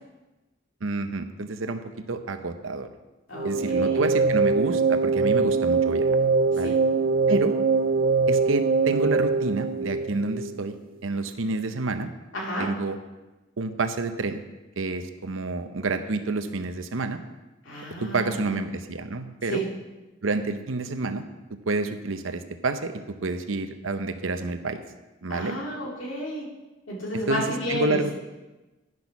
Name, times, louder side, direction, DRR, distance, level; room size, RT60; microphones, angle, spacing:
voice 1, 0.8-1.8 2.1-2.9 3.4-6.1 6.5-6.8 7.3-7.5 8.3-10.7 11.0-12.1 12.6-13.0 13.6-14.4 14.8-17.2 18.0-19.6 20.2-21.2 21.5-22.9 23.2-24.8 25.2-25.6 27.3-28.1, right 3 dB, 85° right, 8 dB, 0.8 m, -29 dB
voice 2, 3.3-4.4 6.5-6.8 12.3-12.8 17.6-18.6 19.4-19.7 25.3-26.5 26.9-28.0, equal, 75° left, -3 dB, 2.6 m, -32 dB
sound 1, 3.4-10.6, right 4 dB, 45° right, 0.4 m, -23 dB
10.5 x 6.2 x 5.8 m, 1.1 s
head